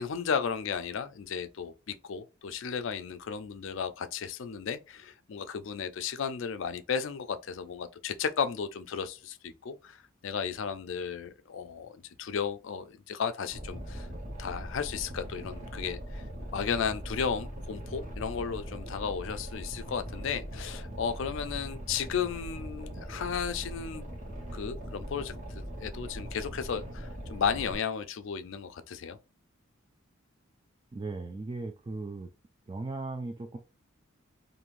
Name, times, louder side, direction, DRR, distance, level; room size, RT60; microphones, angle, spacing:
voice 1, 0.0-14.1 14.4-16.2 16.5-24.1 24.5-25.3 25.8-29.2, left 6 dB, 65° left, 0.4 m, -34 dB
Boat Water vehicle, 13.5-27.8, equal, 40° right, 1.0 m, -40 dB
voice 2, 30.9-32.3 32.7-33.6, right 3 dB, 25° right, 0.3 m, -37 dB
2.6 x 2.5 x 3.1 m
head